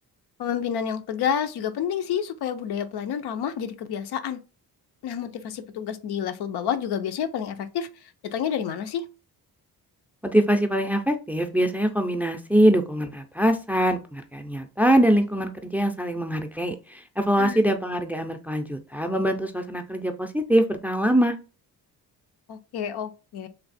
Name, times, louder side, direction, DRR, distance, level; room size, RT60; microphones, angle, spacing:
voice 1, 0.4-4.4 5.0-9.1 17.4-17.6 22.5-23.5, left 8 dB, 80° left, 0.7 m, -29 dB
voice 2, 10.2-21.3, right 1 dB, 5° right, 0.4 m, -23 dB
3.3 x 2.8 x 4.0 m
cardioid pair, 120°, 38 cm